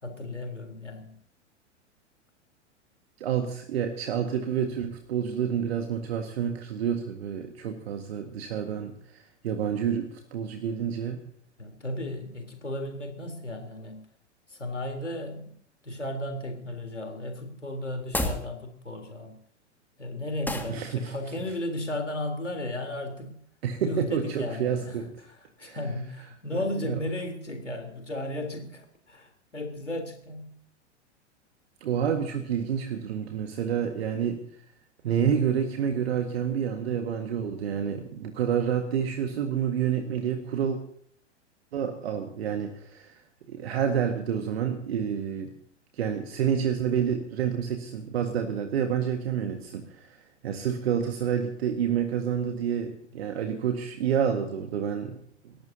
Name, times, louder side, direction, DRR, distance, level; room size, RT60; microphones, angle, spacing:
voice 1, 0.0-1.2 11.6-14.1 14.5-15.5 15.8-19.4 20.0-23.4 23.8-30.5, left 1 dB, 85° left, 5 dB, 3.8 m, -35 dB
voice 2, 3.2-11.2 20.7-21.1 23.6-25.1 25.6-25.8 26.8-27.0 31.8-34.4 35.0-40.8 41.7-43.2 43.5-45.5 45.9-55.6, right 8 dB, 60° right, 5 dB, 1.9 m, -29 dB
sound 1, 18.0-18.5 20.4-20.8, left 1 dB, 5° left, 2.1 m, -29 dB
29.0 x 15.0 x 2.9 m, 0.64 s
figure-of-eight pair, 95°, 35 cm